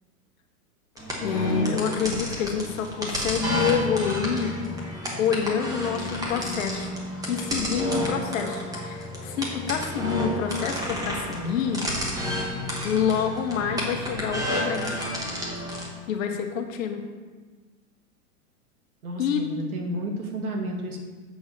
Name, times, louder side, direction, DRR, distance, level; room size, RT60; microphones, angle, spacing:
sound 1, 1.0-15.9, equal, 10° right, 1.2 m, -30 dB
voice 1, 1.2-4.6 5.2-6.9 7.3-11.9 12.8-15.1 16.1-17.1 19.2-19.5, left 7 dB, 65° left, 4 dB, 1.3 m, -27 dB
voice 2, 19.0-21.0, right 1 dB, 80° right, 2 dB, 1.9 m, -32 dB
8.0 x 3.9 x 6.7 m, 1.4 s
hypercardioid pair, 145°, 44 cm